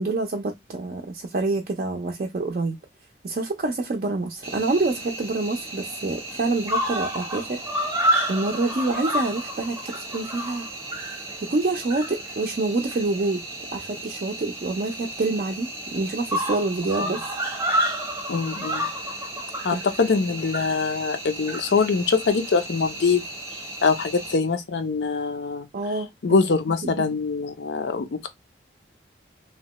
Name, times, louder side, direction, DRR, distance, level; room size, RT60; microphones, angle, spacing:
voice 1, 0.0-2.8 3.2-7.6 8.3-10.7 11.4-13.4 13.7-17.2 19.7-19.8 25.7-26.5 26.8-27.1, right 3 dB, 50° right, 0.4 m, -27 dB
Cricket, 4.4-24.4, right 1 dB, 15° right, 0.7 m, -31 dB
voice 2, 18.3-18.8 19.6-23.3 23.8-25.7 26.2-28.3, left 4 dB, 80° left, 0.5 m, -23 dB
2.8 x 2.1 x 2.9 m
head